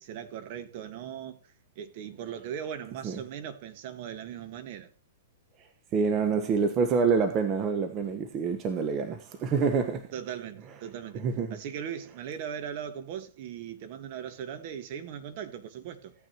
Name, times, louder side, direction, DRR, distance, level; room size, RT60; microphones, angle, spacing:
voice 1, 0.0-1.4 1.7-4.9 10.1-16.1, right 9 dB, 50° right, 1.5 m, -39 dB
voice 2, 5.9-10.1 11.1-11.6, right 5 dB, 30° right, 1.1 m, -27 dB
16.0 x 9.3 x 3.0 m
hypercardioid pair, 120°, 0 cm